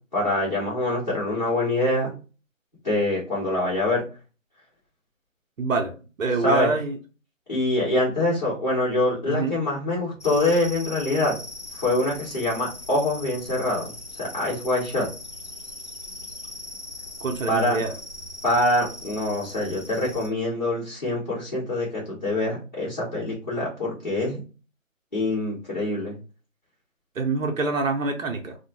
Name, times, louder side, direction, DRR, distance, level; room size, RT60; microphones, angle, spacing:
voice 1, 0.1-2.1 2.8-4.0 6.4-6.7 7.5-11.3 11.7-13.9 14.2-15.1 17.5-17.8 18.4-24.4 25.1-26.1, left 1 dB, 35° left, -11 dB, 1.3 m, -24 dB
voice 2, 5.6-7.0 9.3-9.6 17.2-17.9 27.2-28.6, right 3 dB, 75° right, 4 dB, 0.6 m, -26 dB
sound 1, 10.2-20.3, left 2 dB, 55° left, 0.8 m, -40 dB
2.6 x 2.1 x 2.9 m, 0.34 s
figure-of-eight pair, 175°, 40 cm